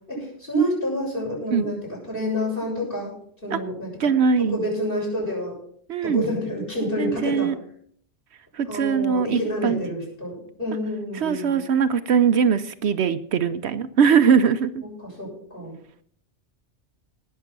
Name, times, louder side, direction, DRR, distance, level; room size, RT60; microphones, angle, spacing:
voice 1, 0.1-1.8 2.1-3.1 3.4-4.1 4.4-5.6 6.0-7.5 8.7-11.6 15.0-15.7, equal, 50° left, -3 dB, 7.8 m, -28 dB
voice 2, 4.0-4.6 5.9-6.2 7.0-7.5 8.5-9.8 11.2-14.8, right 6 dB, 70° right, 11 dB, 0.9 m, -21 dB
19.0 x 6.7 x 6.0 m, 0.62 s
omnidirectional pair, 1.2 m